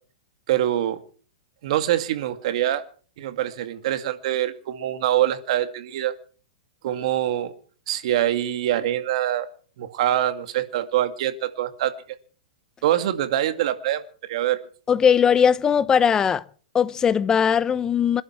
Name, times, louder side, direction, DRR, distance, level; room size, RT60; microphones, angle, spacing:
voice 1, 0.5-1.0 1.6-2.8 3.2-6.1 6.8-7.5 7.9-9.5 9.8-11.9 12.8-14.6, right 12 dB, 60° right, 2.2 m, -24 dB
voice 2, 14.9-16.4 16.7-18.2, left 7 dB, 15° left, 0.8 m, -19 dB
26.5 x 11.0 x 4.6 m
hypercardioid pair, 135°, 4 cm